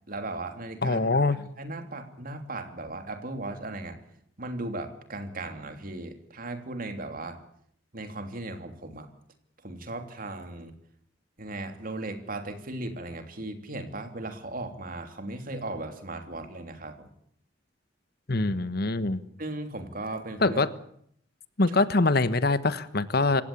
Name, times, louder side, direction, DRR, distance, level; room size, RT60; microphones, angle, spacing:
voice 1, 0.1-1.0 1.3-4.0 4.4-7.4 7.9-9.1 9.6-10.7 11.4-17.1 19.4-20.6 21.7-21.8, right 2 dB, 50° right, 7 dB, 3.1 m, -37 dB
voice 2, 0.8-1.4 18.3-19.2 20.4-20.7 21.6-23.4, left 3 dB, 55° left, 14 dB, 1.3 m, -24 dB
26.5 x 16.0 x 8.6 m, 0.67 s
head